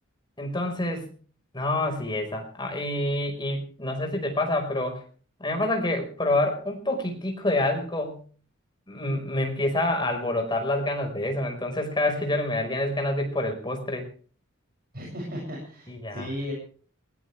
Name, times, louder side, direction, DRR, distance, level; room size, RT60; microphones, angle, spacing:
voice 1, 0.4-1.1 1.5-5.0 5.4-8.2 8.9-14.1 15.9-16.3, left 1 dB, 20° left, 4 dB, 5.1 m, -27 dB
voice 2, 14.9-16.5, equal, 45° right, -2 dB, 7.5 m, -35 dB
21.0 x 17.5 x 3.5 m, 0.43 s
head